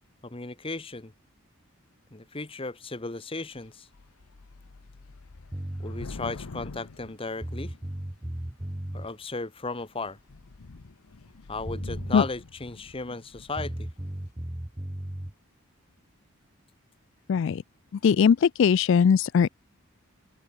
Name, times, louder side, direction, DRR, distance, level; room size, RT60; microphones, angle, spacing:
voice 1, 0.2-1.1 2.1-3.9 5.8-7.7 8.9-10.2 11.5-13.9, left 3 dB, 25° left, 1.2 m, -35 dB
Thunder / Rain, 3.5-3.7 3.9-8.1 8.8-9.2 9.6-9.8 10.1-13.8, left 3 dB, 80° left, 0.8 m, -45 dB
sound 1, 5.5-6.0 7.1-7.2 7.4-9.1 11.3-11.4 11.7-12.3 13.6-15.3, right 1 dB, 15° right, 1.1 m, -35 dB
voice 2, 17.3-17.6 18.0-19.5, left 6 dB, 55° left, 0.3 m, -20 dB
open air
head